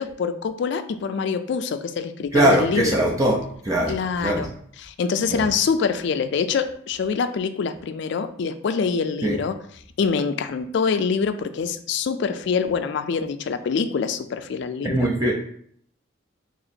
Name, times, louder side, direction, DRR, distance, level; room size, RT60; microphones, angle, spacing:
voice 1, 0.0-3.0 3.9-4.5 4.8-9.6 10.0-15.1, left 5 dB, 60° left, 10 dB, 0.3 m, -25 dB
voice 2, 2.3-3.4 3.6-4.5 5.3-5.4 9.2-9.3 14.8-15.3, right 1 dB, 15° right, -2 dB, 0.5 m, -21 dB
2.9 x 2.8 x 4.1 m, 0.63 s
head